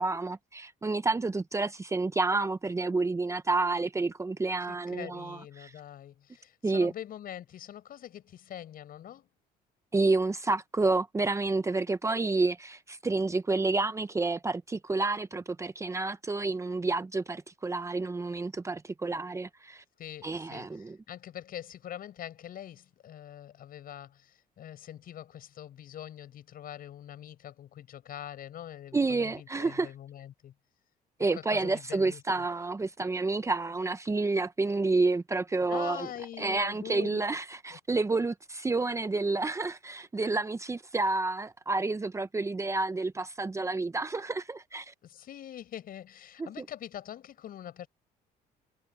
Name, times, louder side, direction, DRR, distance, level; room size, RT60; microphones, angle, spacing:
voice 1, 0.0-5.7 6.6-6.9 9.9-19.8 20.2-21.0 28.9-29.9 31.2-36.1 36.4-44.9 46.4-46.7, right 3 dB, 15° right, 0.8 m, -29 dB
voice 2, 4.7-9.3 20.0-30.5 31.4-32.4 35.7-37.2 37.7-37.8 45.0-47.9, left 11 dB, 60° left, 6.1 m, -44 dB
cardioid pair, 110°, 17 cm